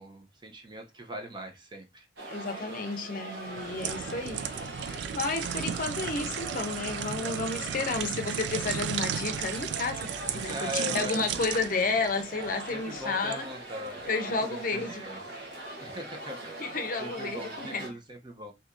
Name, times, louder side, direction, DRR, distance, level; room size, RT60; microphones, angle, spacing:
voice 1, 0.0-2.1 10.2-11.2 12.7-14.0 14.4-15.2 15.8-16.7 17.0-18.5, equal, 25° right, 0.6 m, -40 dB
sound 1, 2.2-17.9, right 1 dB, 65° right, 1.0 m, -41 dB
voice 2, 2.3-4.4 4.7-13.5 14.1-15.0 16.6-17.8, left 3 dB, 50° left, 0.6 m, -32 dB
sound 2, 3.5-13.4 13.9-14.0, right 8 dB, 80° right, 0.3 m, -35 dB
2.8 x 2.6 x 3.5 m
head